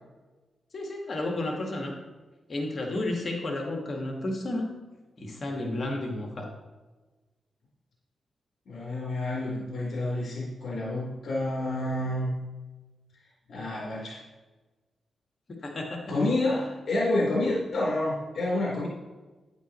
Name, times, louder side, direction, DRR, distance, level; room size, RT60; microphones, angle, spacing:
voice 1, 0.7-1.9 2.5-4.8 5.2-6.5 15.6-16.1, left 2 dB, 45° left, 1 dB, 1.9 m, -32 dB
voice 2, 8.7-12.3 13.5-14.2 16.1-18.9, left 2 dB, 65° left, -5 dB, 3.8 m, -29 dB
11.5 x 10.5 x 3.1 m, 1.2 s
cardioid pair, 80°, 0 cm